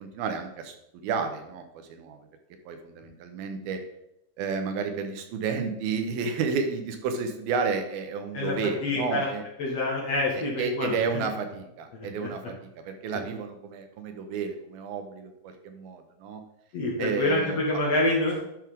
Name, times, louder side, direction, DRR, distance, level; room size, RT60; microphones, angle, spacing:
voice 1, 0.0-1.6 1.9-2.2 2.7-3.8 4.4-9.4 10.3-12.6 12.8-16.4 17.0-17.6, right 5 dB, 85° right, 6 dB, 2.8 m, -31 dB
voice 2, 8.8-9.3 9.6-11.3 11.9-12.1 16.7-18.5, left 2 dB, 55° left, -2 dB, 2.1 m, -27 dB
10.5 x 6.1 x 3.6 m, 0.82 s
omnidirectional pair, 4.2 m